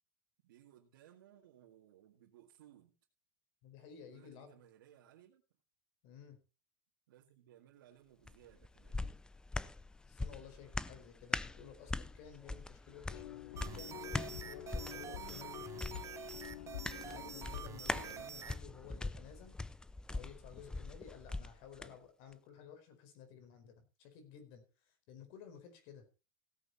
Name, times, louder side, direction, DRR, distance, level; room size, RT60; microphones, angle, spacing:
voice 1, 0.4-3.0 4.1-5.4 7.1-9.0, right 11 dB, 85° right, -1 dB, 2.1 m, -62 dB
voice 2, 3.6-4.5 6.0-6.4 10.1-13.2 13.7-16.0 17.0-19.5 20.1-26.1, left 7 dB, 60° left, 8 dB, 4.9 m, -54 dB
sound 1, 8.3-21.9 22.3-22.4, left 2 dB, 5° left, 0.5 m, -43 dB
sound 2, 13.1-18.2, left 14 dB, 85° left, 0.9 m, -48 dB
sound 3, 13.6-18.6, right 9 dB, 30° right, 0.9 m, -48 dB
17.0 x 8.5 x 4.2 m, 0.31 s
supercardioid pair, 125°, 11 cm